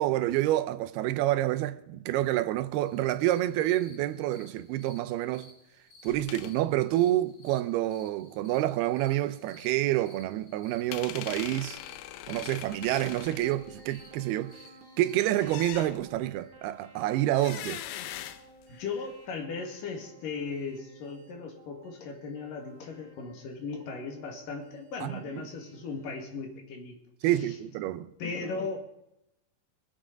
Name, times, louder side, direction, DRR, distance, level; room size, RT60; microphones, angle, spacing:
voice 1, 0.0-5.5 6.0-11.8 12.3-14.6 15.0-17.8 25.0-25.4 27.2-28.1, right 14 dB, 85° right, 2.7 m, -28 dB
sound 1, 2.9-15.7, left 2 dB, 35° left, 3.9 m, -57 dB
sound 2, 6.1-6.5 10.9-14.2 15.4-16.3 17.3-19.1, left 12 dB, 80° left, 2.5 m, -41 dB
sound 3, 12.6-26.2, right 2 dB, 45° right, 1.9 m, -56 dB
voice 2, 18.7-27.0 27.2-27.5 28.2-28.8, left 4 dB, 60° left, 3.6 m, -37 dB
23.0 x 8.6 x 5.1 m
omnidirectional pair, 4.4 m